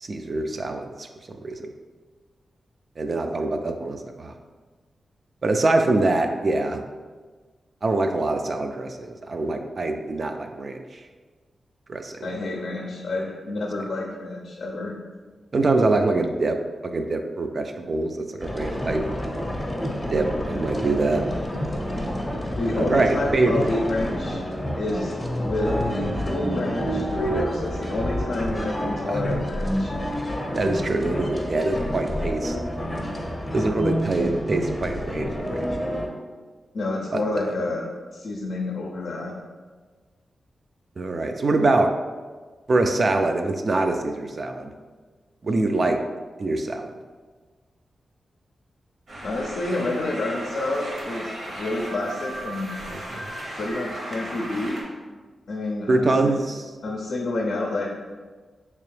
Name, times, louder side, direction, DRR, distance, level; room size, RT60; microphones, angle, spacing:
voice 1, 0.0-1.1 1.4-1.7 3.0-4.3 5.4-6.8 7.8-11.0 11.9-12.2 15.5-16.6 16.8-19.0 20.1-21.2 22.7-23.7 29.1-29.2 30.6-32.6 33.5-35.9 37.1-37.2 41.0-41.9 42.7-44.7 45.4-46.0 46.4-46.9 52.9-53.3 55.9-56.6, right 2 dB, 50° right, 5 dB, 0.3 m, -24 dB
voice 2, 12.2-14.9 22.6-24.4 24.8-25.1 25.4-29.9 36.7-37.9 38.1-39.3 45.7-45.8 49.2-52.7 53.6-54.8 55.5-56.3 56.8-57.9, left 2 dB, 75° left, -1 dB, 0.5 m, -29 dB
sound 1, 18.4-36.1, equal, 20° left, 0.6 m, -28 dB
sound 2, 49.1-54.8, right 1 dB, 65° right, 0.9 m, -36 dB
3.3 x 2.9 x 3.2 m, 1.4 s
cardioid pair, 75°, 0 cm